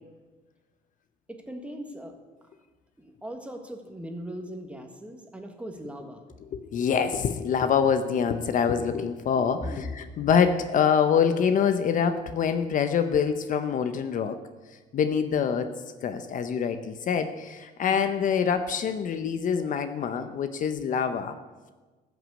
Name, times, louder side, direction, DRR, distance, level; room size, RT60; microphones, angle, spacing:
voice 1, 1.3-2.2 3.0-6.2 9.6-9.9 17.8-18.1, equal, 5° right, 4 dB, 1.6 m, -39 dB
voice 2, 6.5-14.4 14.9-15.7 16.0-21.4, left 7 dB, 50° left, 10 dB, 0.8 m, -25 dB
13.5 x 6.2 x 8.2 m, 1.3 s
cardioid pair, 110°, 17 cm